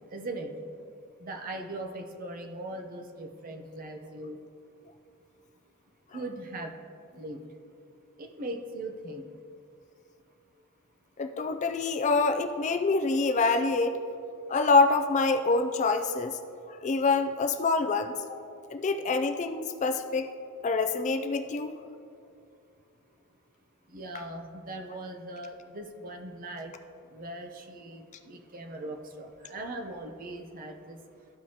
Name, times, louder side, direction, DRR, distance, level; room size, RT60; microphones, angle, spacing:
voice 1, 0.1-0.5 1.2-4.4 6.1-6.7 7.1-7.4 8.2-9.3 23.9-26.7 27.1-31.0, right 2 dB, 40° right, 4 dB, 0.7 m, -39 dB
voice 2, 11.2-14.0 14.5-16.3 16.7-18.4 18.7-20.3 20.6-21.7, left 3 dB, 35° left, 7 dB, 0.3 m, -26 dB
13.5 x 4.6 x 2.8 m, 2.5 s
head